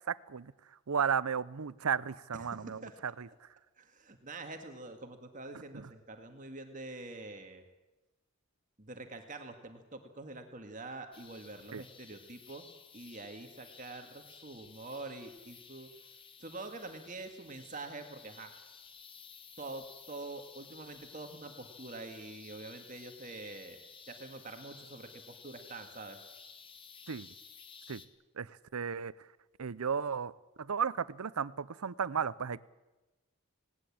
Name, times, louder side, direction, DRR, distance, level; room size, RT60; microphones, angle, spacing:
voice 1, 0.1-0.5 0.9-3.3 5.7-5.9 11.7-11.8 27.1-27.3 27.9-28.0 28.4-29.1 29.6-30.3 30.6-32.6, right 7 dB, 90° right, 19 dB, 0.7 m, -34 dB
voice 2, 2.3-3.0 3.8-7.6 8.8-15.9 16.4-18.5 19.6-23.8 24.1-26.2, right 2 dB, 35° right, 6 dB, 1.9 m, -46 dB
sound 1, 11.1-28.1, left 6 dB, 25° left, 1.4 m, -54 dB
19.5 x 18.0 x 8.7 m, 1.1 s
head